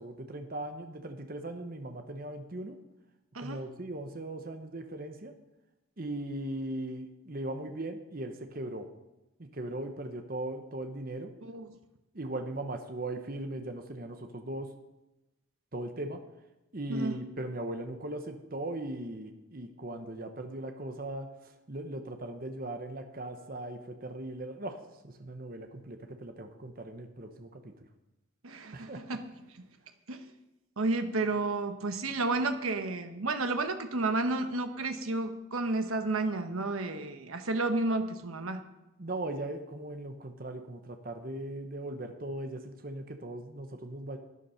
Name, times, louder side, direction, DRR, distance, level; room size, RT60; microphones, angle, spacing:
voice 1, 0.0-2.8 3.4-5.3 6.0-8.9 9.4-11.3 12.1-14.7 15.7-16.2 16.7-24.8 25.0-27.7 28.7-29.0 39.0-44.2, right 1 dB, 45° right, 6 dB, 1.0 m, -39 dB
voice 2, 28.4-29.2 30.1-30.3 30.8-38.6, right 2 dB, 85° right, 7 dB, 1.1 m, -31 dB
12.0 x 9.7 x 5.7 m, 0.96 s
head